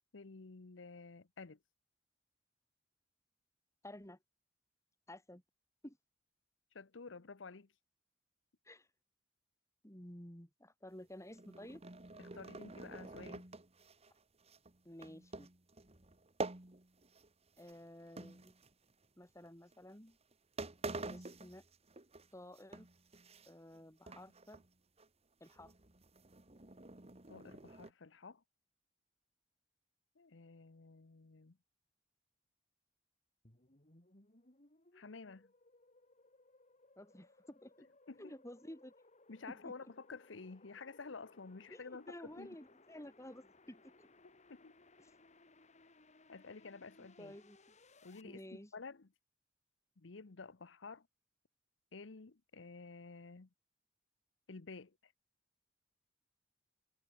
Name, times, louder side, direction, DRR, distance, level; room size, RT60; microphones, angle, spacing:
voice 1, 0.1-1.6 6.7-7.7 12.2-13.5 27.3-28.4 30.2-31.6 34.9-35.5 38.1-38.3 39.3-42.6 44.5-44.8 46.3-47.4 48.0-49.1 50.0-51.1 51.9-53.5 54.5-55.1, left 4 dB, 80° left, 0.9 m, -51 dB
voice 2, 3.8-4.2 5.1-5.4 5.8-6.0 8.6-8.9 9.8-11.8 14.8-15.5 17.6-18.5 19.2-20.2 21.1-21.6 22.3-22.9 23.5-24.6 25.4-25.7 37.0-37.9 38.2-38.9 39.6-39.8 41.7-44.1 47.0-47.6 48.2-48.7, left 1 dB, 15° left, 4.7 m, -53 dB
sound 1, 11.2-17.3 17.6-19.1 19.7-19.9 20.3-20.4 20.6-22.3 22.6-23.8 24.1-24.7 25.0-25.1 25.4-27.9, right 2 dB, 35° right, 2.0 m, -48 dB
sound 2, 33.4-48.2, left 2 dB, 40° left, 3.5 m, -65 dB
head